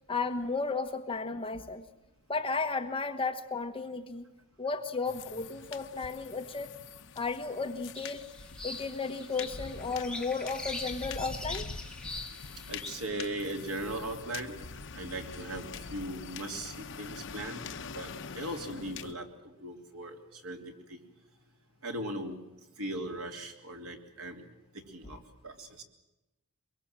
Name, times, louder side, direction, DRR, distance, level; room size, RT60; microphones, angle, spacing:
voice 1, 0.1-1.9 2.3-4.3 4.6-6.7 7.2-8.3 8.6-11.7, left 4 dB, 25° left, 7 dB, 1.2 m, -34 dB
sound 1, 5.0-19.1, left 5 dB, 60° left, 1.0 m, -44 dB
sound 2, 8.0-13.0, left 2 dB, 5° left, 2.1 m, -42 dB
voice 2, 12.7-14.6 14.9-17.6 17.9-20.6 20.9-21.0 21.8-22.4 22.8-24.5 24.7-25.8, right 1 dB, 70° right, 3 dB, 3.3 m, -39 dB
23.5 x 23.0 x 7.6 m, 0.96 s
head